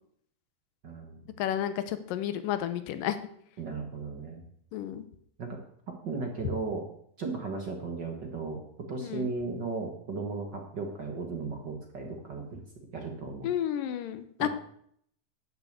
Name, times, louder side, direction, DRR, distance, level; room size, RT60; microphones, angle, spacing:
voice 1, 0.8-1.3 3.6-4.4 5.4-5.6 5.9-6.9 7.2-12.6 12.9-13.5 14.4-14.5, right 4 dB, 45° right, 2 dB, 1.6 m, -36 dB
voice 2, 1.4-3.2 4.7-5.0 9.0-9.3 13.4-14.5, left 11 dB, 85° left, 11 dB, 2.6 m, -31 dB
11.5 x 6.8 x 8.1 m, 0.68 s
omnidirectional pair, 3.8 m